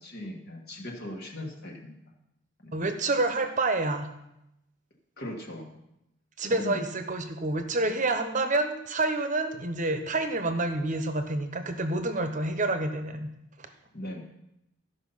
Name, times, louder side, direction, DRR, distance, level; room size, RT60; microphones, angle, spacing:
voice 1, 0.0-2.0 2.6-2.8 5.2-5.7 6.4-6.8 13.9-14.2, left 1 dB, 45° left, -1 dB, 1.5 m, -39 dB
voice 2, 2.7-4.1 6.4-13.3 13.6-13.7, right 2 dB, 35° right, 7 dB, 0.9 m, -28 dB
14.0 x 5.5 x 5.6 m, 0.85 s
head